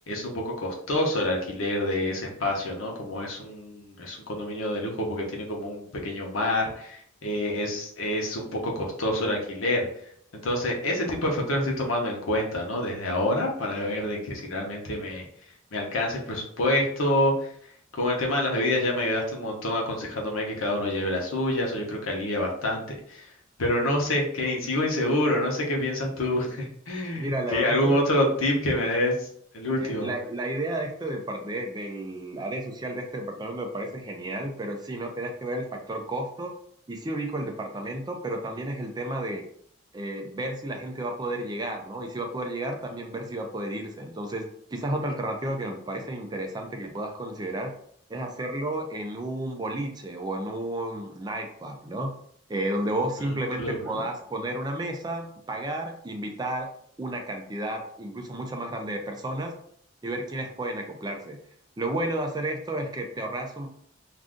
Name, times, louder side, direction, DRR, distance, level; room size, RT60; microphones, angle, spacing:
voice 1, 0.1-9.9 10.3-15.3 15.7-17.5 17.9-23.3 23.6-29.3 29.5-30.1 53.2-54.1, left 1 dB, 90° left, -1 dB, 0.8 m, -27 dB
voice 2, 27.2-28.0 29.8-36.5 36.9-39.4 39.9-47.7 48.1-52.1 52.5-56.7 57.0-59.6 60.0-61.4 61.8-63.7, right 1 dB, 20° right, 3 dB, 0.3 m, -32 dB
2.5 x 2.5 x 3.5 m, 0.65 s
head